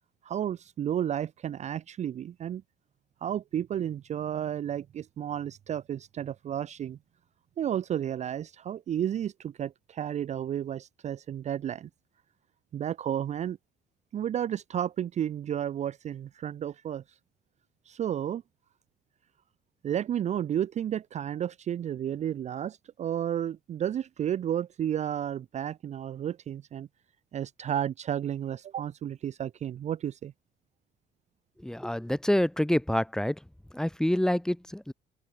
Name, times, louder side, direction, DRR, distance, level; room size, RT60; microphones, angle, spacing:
voice 1, 0.2-2.6 3.2-7.0 7.6-11.9 12.7-13.6 14.1-17.0 17.9-18.4 19.8-26.9 27.3-30.3, right 10 dB, 45° right, 0.5 m, -32 dB
voice 2, 31.6-33.4 33.7-34.9, left 1 dB, 5° left, 1.7 m, -27 dB
open air
cardioid pair, 110°, 17 cm